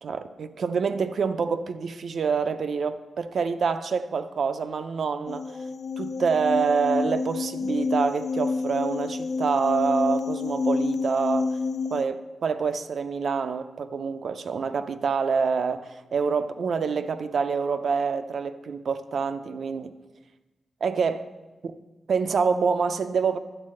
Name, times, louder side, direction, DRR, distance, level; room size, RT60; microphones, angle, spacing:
voice 1, 0.0-5.4 6.0-11.6 11.9-19.9 20.8-21.3 21.6-21.7 22.1-23.4, right 5 dB, 60° right, 0.5 m, -26 dB
sound 1, 5.3-12.0, left 4 dB, 60° left, 0.4 m, -28 dB
11.0 x 4.2 x 7.5 m
wide cardioid pair, 155°, 0 cm